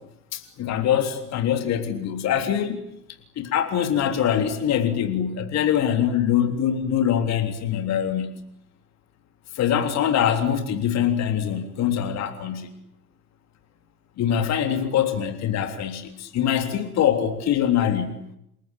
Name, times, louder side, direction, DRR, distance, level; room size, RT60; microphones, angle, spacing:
voice 1, 0.3-2.8 3.4-8.3 9.6-12.7 14.2-18.2, left 9 dB, 35° left, 7 dB, 3.5 m, -23 dB
29.0 x 22.5 x 8.9 m, 0.76 s
hypercardioid pair, 100°, 47 cm